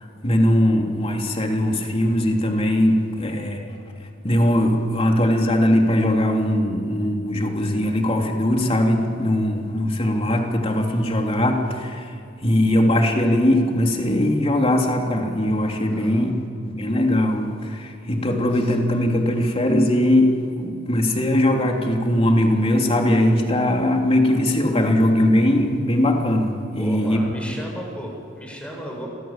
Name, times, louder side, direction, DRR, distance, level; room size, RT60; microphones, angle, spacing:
voice 1, 0.0-3.8 4.0-16.3 16.6-27.2, left 1 dB, 30° left, 3.3 m, -20 dB
voice 2, 15.9-16.2 26.8-29.1, equal, 5° left, 6.8 m, -34 dB
29.5 x 24.5 x 7.6 m
head